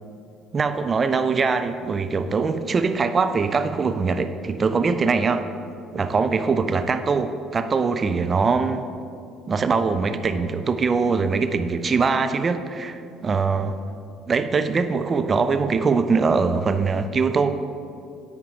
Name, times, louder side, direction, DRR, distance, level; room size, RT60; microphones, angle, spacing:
voice 1, 0.5-5.4 5.9-8.9 9.5-13.8 14.3-17.6, right 4 dB, 35° right, 9 dB, 0.4 m, -22 dB
9.7 x 3.6 x 4.8 m, 2.5 s
figure-of-eight pair, 55°, 0 cm